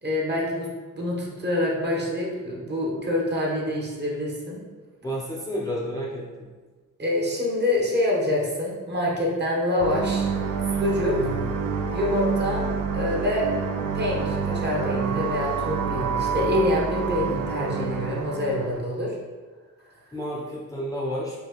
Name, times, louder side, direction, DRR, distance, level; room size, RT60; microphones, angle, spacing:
voice 1, 0.0-0.7 0.9-4.6 7.0-10.3 10.7-11.2 11.9-12.7 12.9-13.5 13.9-19.2, left 1 dB, 30° right, -3 dB, 1.0 m, -26 dB
voice 2, 5.0-6.2 11.1-11.5 20.1-21.3, equal, 10° left, -6 dB, 0.5 m, -31 dB
sound 1, 9.8-18.8, right 5 dB, 75° right, 0.5 m, -27 dB
5.5 x 2.7 x 3.0 m, 1.4 s
wide cardioid pair, 130°, 32 cm